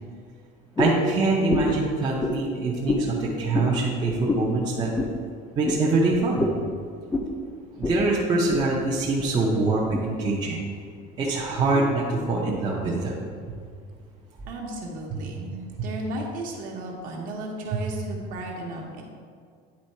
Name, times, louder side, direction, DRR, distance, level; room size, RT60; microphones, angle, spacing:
sound 1, 0.8-1.0 1.5-1.8 2.2-2.4 2.9-3.1 3.5-3.7 4.3-4.5 5.0-5.1 5.6-5.8 6.4-6.6 7.1-7.3 7.8-8.0 8.3-8.7 9.2-9.3 9.9-10.0, left 2 dB, 10° left, 0.4 m, -26 dB
voice 1, 0.8-4.9 5.5-6.4 7.8-10.6 11.2-13.2 15.8-15.9, right 2 dB, 20° right, -4 dB, 0.7 m, -24 dB
voice 2, 14.5-19.0, right 1 dB, 45° right, 0 dB, 1.2 m, -34 dB
9.6 x 3.6 x 4.3 m, 2.1 s
cardioid pair, 170°, 19 cm